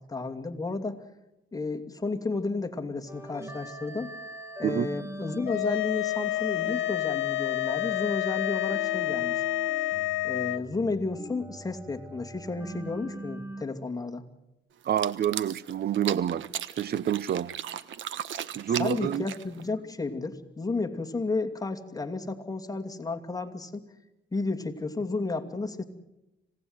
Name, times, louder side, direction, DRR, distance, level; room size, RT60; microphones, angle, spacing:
voice 1, 0.1-1.0 1.5-4.1 4.6-9.4 10.2-14.2 18.8-23.9 24.3-25.8, left 3 dB, 20° left, 2.6 m, -32 dB
sound 1, 3.1-13.6, equal, 15° right, 2.2 m, -41 dB
sound 2, 5.5-10.6, left 17 dB, 90° left, 0.8 m, -29 dB
voice 2, 14.8-16.5 16.8-17.5 18.5-19.3, right 10 dB, 50° right, 0.7 m, -28 dB
sound 3, 14.8-19.7, right 10 dB, 75° right, 1.2 m, -37 dB
26.0 x 18.0 x 8.1 m
cardioid pair, 90°, 20 cm